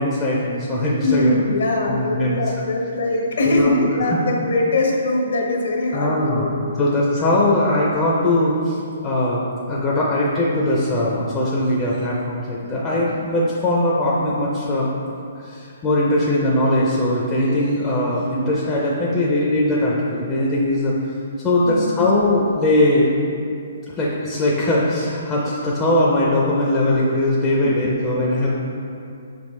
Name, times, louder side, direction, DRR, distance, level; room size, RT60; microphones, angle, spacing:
voice 1, 0.0-1.4 1.9-2.4 3.4-3.7 4.1-4.2 5.9-8.8 9.0-9.4 9.7-14.9 15.4-20.9 21.4-23.1 24.0-28.5, left 1 dB, 15° left, -6 dB, 0.5 m, -20 dB
voice 2, 1.0-6.5 21.7-22.2 27.6-27.7 28.1-28.3, left 2 dB, 65° left, 0 dB, 1.1 m, -22 dB
6.5 x 5.2 x 3.2 m, 2.5 s
hypercardioid pair, 170°, 0 cm